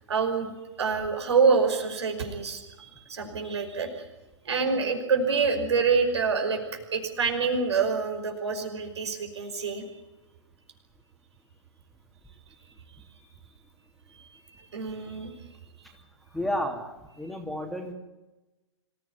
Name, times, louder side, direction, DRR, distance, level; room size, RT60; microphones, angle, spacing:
voice 1, 0.1-4.1 4.4-6.6 6.9-9.8 13.1-13.2 14.7-15.3, right 5 dB, 65° right, 5 dB, 5.6 m, -26 dB
voice 2, 16.3-16.9 17.2-17.9, left 1 dB, ahead, 2 dB, 3.1 m, -31 dB
26.5 x 16.0 x 9.6 m, 1.1 s
figure-of-eight pair, 110°, 16 cm